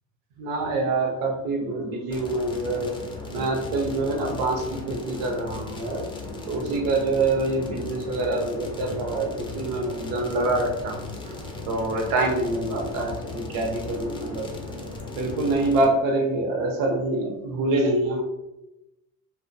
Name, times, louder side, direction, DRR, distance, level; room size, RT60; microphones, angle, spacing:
voice 1, 0.4-2.9 3.3-6.0 6.5-11.3 11.7-14.5 15.1-18.2, right 2 dB, 75° right, 1 dB, 0.8 m, -26 dB
sound 1, 2.1-15.9, left 3 dB, 15° left, 0.5 m, -37 dB
2.4 x 2.2 x 2.5 m, 0.94 s
supercardioid pair, 95°, 36 cm